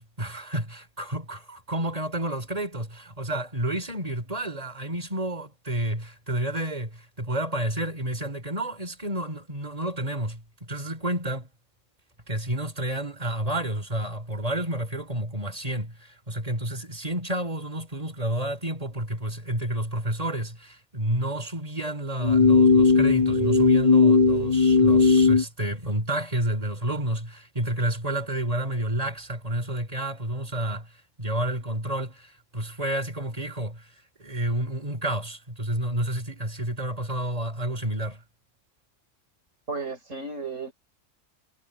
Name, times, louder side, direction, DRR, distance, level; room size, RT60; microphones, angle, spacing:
voice 1, 0.0-11.5 12.3-33.9 34.2-38.2, right 1 dB, 30° right, 3.9 m, -30 dB
sound 1, 22.2-25.4, left 4 dB, 35° left, 1.3 m, -18 dB
voice 2, 39.7-40.7, right 4 dB, 90° right, 5.1 m, -33 dB
omnidirectional pair, 1.3 m